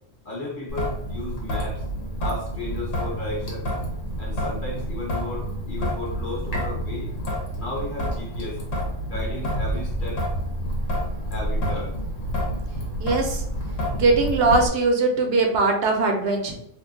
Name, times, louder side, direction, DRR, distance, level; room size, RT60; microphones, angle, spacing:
voice 1, 0.2-1.8 2.2-3.7 4.2-7.2 7.6-8.6 9.0-10.2 11.3-12.0, left 2 dB, 45° left, -2 dB, 0.9 m, -34 dB
Traffic noise roadway noise / Drip / Trickle dribble, 0.7-14.7, equal, 85° left, 1.3 m, -28 dB
voice 2, 13.0-13.4 13.9-16.5, right 3 dB, 60° right, 3 dB, 0.8 m, -21 dB
2.7 x 2.2 x 3.6 m, 0.74 s
omnidirectional pair, 1.3 m